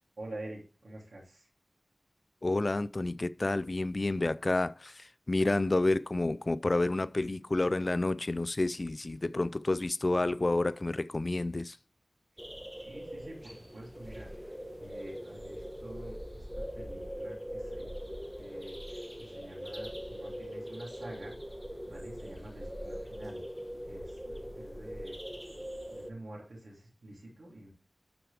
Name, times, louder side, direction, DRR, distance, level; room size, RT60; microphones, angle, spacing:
voice 1, 0.2-1.5 12.8-16.4 16.7-17.9 18.4-21.4 21.9-23.4 23.9-25.2 25.9-27.7, right 1 dB, 90° right, 2.9 m, -48 dB
voice 2, 2.4-11.8, left 2 dB, 45° left, 0.3 m, -29 dB
sound 1, 12.4-26.1, equal, 5° right, 1.2 m, -42 dB
12.0 x 4.8 x 3.4 m
wide cardioid pair, 60°, 0 cm